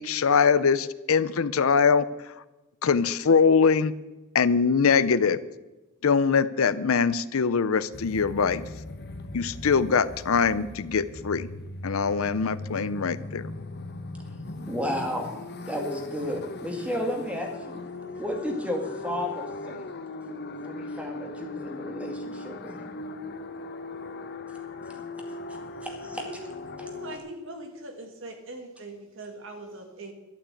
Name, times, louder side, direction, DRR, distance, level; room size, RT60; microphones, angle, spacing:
voice 1, 0.0-2.1 2.8-3.9 4.3-5.4 6.0-8.7 9.3-11.5 11.8-13.4, left 5 dB, 65° left, 16 dB, 0.5 m, -22 dB
sound 1, 7.9-27.2, left 2 dB, 50° left, 1.0 m, -39 dB
voice 2, 14.7-15.3 15.7-17.8 18.2-19.8 20.6-22.9 25.3-26.2, equal, 5° right, 2 dB, 2.1 m, -33 dB
voice 3, 26.8-30.1, right 2 dB, 60° right, 4 dB, 2.2 m, -41 dB
12.0 x 8.9 x 8.3 m, 1.1 s
head